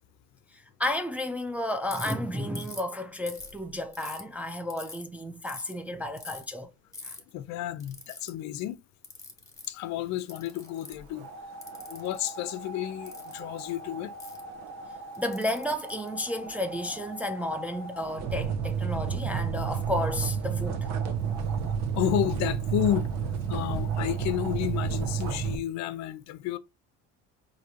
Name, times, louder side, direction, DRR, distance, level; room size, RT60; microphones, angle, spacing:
voice 1, 0.5-6.7 7.0-7.1 15.2-20.9, left 1 dB, 5° right, 0.3 m, -32 dB
Ratchet pawl, 1.9-2.1 2.6-2.9 3.3-4.2 4.7-5.0 5.5-5.7 6.2-6.4 6.9-7.2 7.8-8.3 9.0-9.7 10.3-11.1 11.6-12.3 13.1-13.4 14.2-14.4 15.1-16.6, left 3 dB, 10° left, 1.1 m, -43 dB
voice 2, 7.3-8.8 9.7-11.3 11.9-14.1 22.0-23.1 23.5-26.6, left 13 dB, 65° left, 0.5 m, -31 dB
sound 1, 11.2-25.6, right 6 dB, 65° right, 1.0 m, -32 dB
5.0 x 2.8 x 2.8 m
cardioid pair, 135°, 30 cm